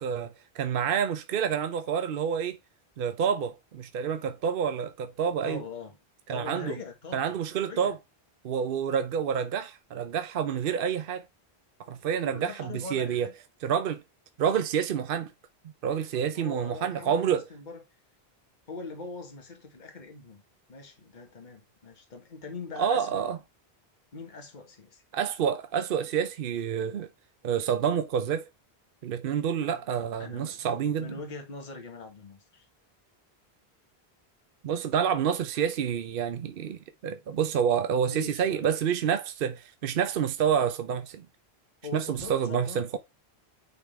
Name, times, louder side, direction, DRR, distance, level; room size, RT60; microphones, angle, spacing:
voice 1, 0.0-2.6 3.0-5.6 6.3-6.7 7.1-8.0 8.4-11.2 11.9-13.3 13.6-14.0 14.4-15.3 15.8-17.4 22.8-23.4 25.1-27.1 27.4-28.5 29.0-31.2 34.6-41.3 41.9-43.0, right 8 dB, 65° right, 0.8 m, -28 dB
voice 2, 5.4-5.9 6.3-7.3 7.6-7.9 11.8-11.9 12.2-13.3 16.1-17.8 18.7-20.4 20.7-23.2 24.1-25.0 29.6-29.8 30.2-30.6 31.0-32.6 38.1-38.7 41.8-42.8, left 4 dB, 45° left, 1.5 m, -42 dB
9.3 x 3.7 x 3.3 m
omnidirectional pair, 1.1 m